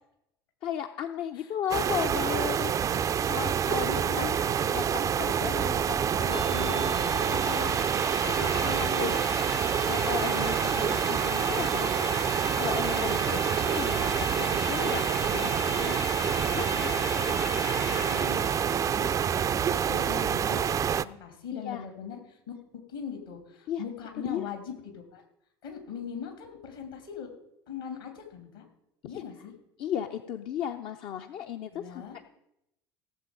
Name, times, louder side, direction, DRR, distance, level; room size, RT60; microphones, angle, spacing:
voice 1, 0.6-9.2 9.9-12.1 12.5-15.5 16.6-17.0 21.5-21.9 23.7-23.8 24.2-24.5 29.0-29.2 29.8-32.0, left 9 dB, 45° left, 6 dB, 0.6 m, -36 dB
voice 2, 1.3-1.8 3.9-4.4 6.3-6.9 8.4-9.1 15.7-16.0 16.7-17.4 17.9-18.5 18.9-19.1 19.6-22.5 22.9-25.2 25.6-27.3 27.7-28.6 29.1-29.5 31.7-32.2, left 7 dB, 70° left, 4 dB, 2.8 m, -41 dB
sound 1, 1.7-21.1, right 8 dB, 25° right, 0.4 m, -27 dB
sound 2, 6.3-19.4, left 4 dB, 85° left, 0.6 m, -38 dB
16.5 x 7.3 x 5.2 m, 0.81 s
figure-of-eight pair, 65°, 12 cm